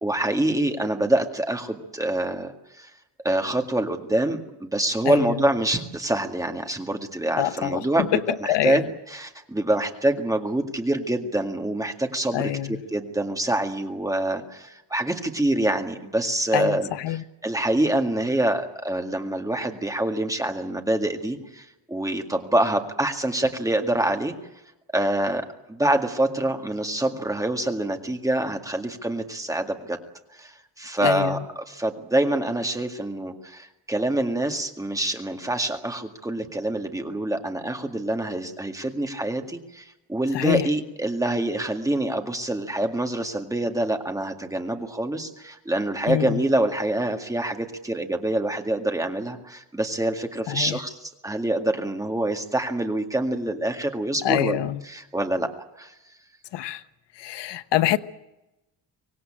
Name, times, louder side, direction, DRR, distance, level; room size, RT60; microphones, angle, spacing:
voice 1, 0.0-2.9 3.2-8.8 9.1-12.5 12.9-16.9 17.4-24.4 24.9-30.0 30.3-54.6 54.9-55.5 55.8-55.9, right 1 dB, 10° right, 2.0 m, -26 dB
voice 2, 5.0-5.4 7.4-7.8 8.1-8.2 8.5-8.9 12.3-12.8 16.5-17.2 31.0-31.4 40.3-40.7 46.1-46.4 50.5-50.8 54.2-54.8 56.5-56.8 57.2-58.0, left 13 dB, 70° left, 1.1 m, -25 dB
25.0 x 18.5 x 8.8 m
cardioid pair, 165°, 43 cm